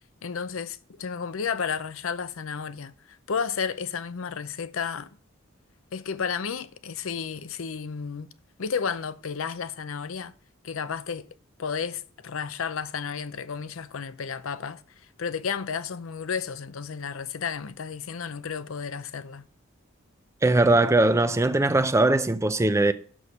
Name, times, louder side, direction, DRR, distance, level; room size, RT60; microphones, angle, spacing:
voice 1, 0.2-5.1 5.9-8.3 8.6-10.3 10.6-11.3 11.6-19.5, left 6 dB, 75° left, 0.6 m, -32 dB
voice 2, 20.4-22.9, right 2 dB, 15° right, 0.5 m, -20 dB
6.8 x 6.2 x 4.9 m
head